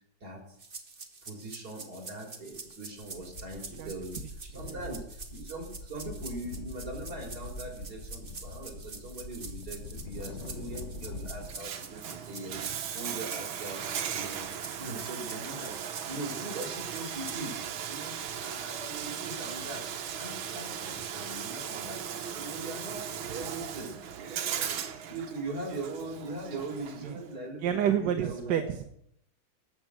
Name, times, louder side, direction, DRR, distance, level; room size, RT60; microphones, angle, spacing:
sound 1, 0.6-17.4, right 4 dB, 30° right, 1.4 m, -46 dB
voice 1, 1.3-4.2 4.5-12.6 12.9-14.5 14.8-17.6 17.9-24.8 25.1-28.7, right 2 dB, 50° right, 0 dB, 4.3 m, -41 dB
sound 2, 2.5-2.7 3.0-11.5, left 3 dB, 40° left, 1.3 m, -43 dB
Bathtub (filling or washing), 11.4-27.3, right 8 dB, 85° right, 1.9 m, -37 dB
voice 2, 27.6-28.8, right 9 dB, 65° right, 7 dB, 1.4 m, -29 dB
18.5 x 6.7 x 7.6 m, 0.73 s
omnidirectional pair, 2.2 m